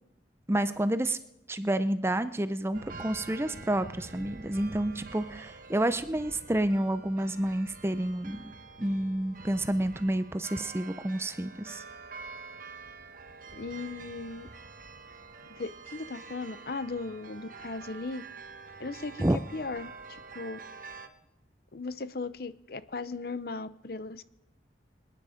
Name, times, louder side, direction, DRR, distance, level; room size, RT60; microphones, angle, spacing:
voice 1, 0.5-1.2 1.5-8.5 8.8-11.8 19.2-19.4, right 1 dB, 15° right, 12 dB, 0.5 m, -29 dB
sound 1, 2.7-21.1, right 4 dB, 50° right, 1.2 m, -47 dB
voice 2, 13.5-14.5 15.5-18.2 18.8-20.6 21.7-24.2, left 3 dB, 55° left, 15 dB, 0.7 m, -37 dB
27.0 x 9.9 x 5.0 m, 0.86 s
head